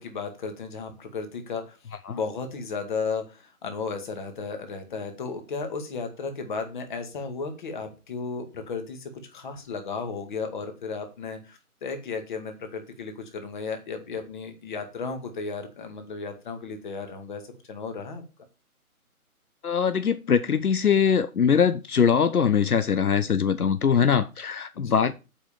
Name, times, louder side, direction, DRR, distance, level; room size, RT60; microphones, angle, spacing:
voice 1, 0.0-1.8 2.1-17.4 17.7-18.2 24.7-25.1, left 4 dB, 30° left, 2.1 m, -34 dB
voice 2, 19.6-25.1, left 7 dB, 75° left, 0.8 m, -22 dB
8.1 x 5.5 x 7.0 m
figure-of-eight pair, 150°, 45 cm